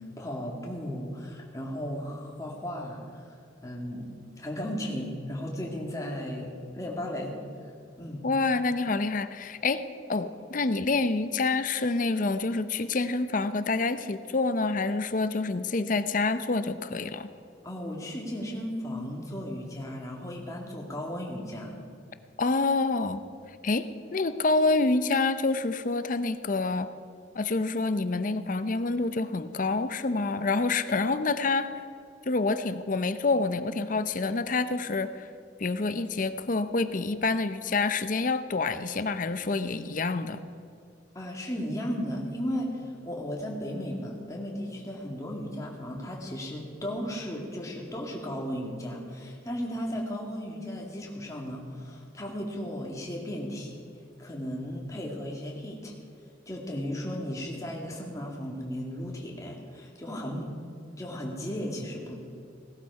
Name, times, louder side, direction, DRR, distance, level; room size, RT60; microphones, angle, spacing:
voice 1, 0.2-3.2 3.6-4.1 4.4-7.4 8.0-8.2 17.6-21.8 41.2-53.8 54.2-55.9 56.5-60.5 61.0-62.1, equal, 15° left, -1 dB, 2.1 m, -35 dB
voice 2, 8.2-9.8 10.1-17.3 22.4-23.2 23.6-26.9 27.3-31.7 32.3-35.3 35.6-40.5, left 3 dB, 45° left, 11 dB, 0.6 m, -27 dB
17.5 x 12.5 x 4.8 m, 2.4 s
head